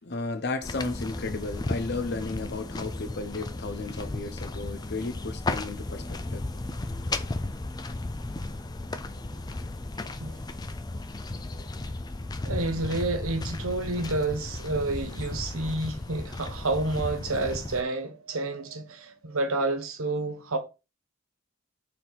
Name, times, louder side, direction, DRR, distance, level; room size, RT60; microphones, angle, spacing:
voice 1, 0.0-6.4, left 3 dB, 50° left, 0.8 m, -34 dB
sound 1, 0.6-17.8, left 2 dB, 20° left, 0.4 m, -35 dB
voice 2, 12.4-20.6, right 2 dB, 85° right, 1.2 m, -29 dB
6.8 x 3.8 x 4.1 m
head